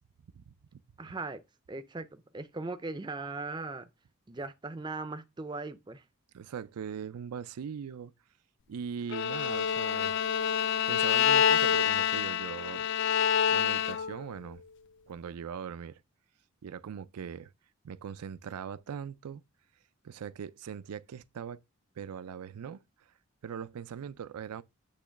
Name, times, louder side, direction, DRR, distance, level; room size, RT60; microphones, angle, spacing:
voice 1, 1.0-3.9 4.3-6.0, right 3 dB, 20° right, 0.4 m, -39 dB
voice 2, 6.3-8.1 8.7-10.1 10.6-12.9 13.5-14.6 15.1-16.0 16.6-17.5 17.8-19.4 20.0-21.6 22.0-22.8 23.4-24.6, right 7 dB, 90° right, 0.4 m, -40 dB
Bowed string instrument, 9.1-14.3, left 8 dB, 50° left, 0.3 m, -27 dB
8.5 x 3.0 x 5.7 m
head